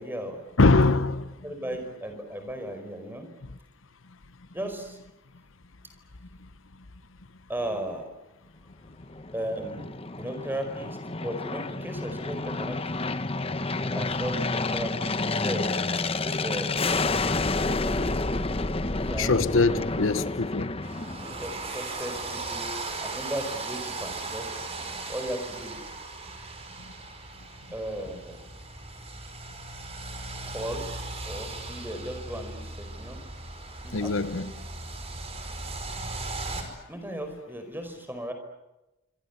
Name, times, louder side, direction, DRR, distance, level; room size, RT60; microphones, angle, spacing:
voice 1, 0.0-0.4 1.4-3.3 4.5-5.0 7.5-8.1 9.3-12.8 13.8-15.7 16.2-16.7 17.8-18.5 18.9-19.5 21.4-22.7 23.0-24.5 25.1-25.9 27.7-28.4 30.5-30.9 31.2-33.2 33.8-34.5 36.9-38.3, right 1 dB, 10° right, 4.9 m, -36 dB
voice 2, 0.6-1.3 19.2-20.7 33.9-34.5 36.6-36.7, left 3 dB, 80° left, 1.0 m, -23 dB
Aircraft, 9.0-21.7, left 3 dB, 30° left, 1.1 m, -29 dB
sound 1, 20.8-36.6, right 3 dB, 30° right, 5.2 m, -37 dB
27.0 x 25.5 x 8.3 m
head